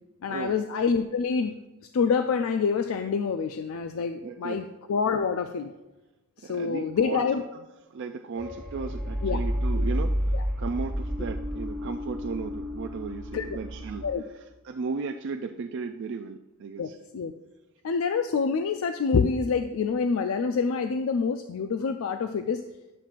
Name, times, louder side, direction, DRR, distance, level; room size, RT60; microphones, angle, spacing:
voice 1, 0.2-1.6 1.9-5.7 6.4-7.4 9.2-9.4 10.3-10.4 13.3-13.6 14.0-14.2 16.8-17.3 17.8-22.6, left 5 dB, 70° left, 8 dB, 0.4 m, -27 dB
voice 2, 4.2-4.7 6.4-7.2 7.9-10.2 10.6-14.1 14.6-17.0, right 4 dB, 55° right, 7 dB, 0.3 m, -35 dB
sound 1, 8.4-14.1, equal, 10° left, 1.6 m, -30 dB
10.5 x 7.2 x 2.5 m, 1.0 s
head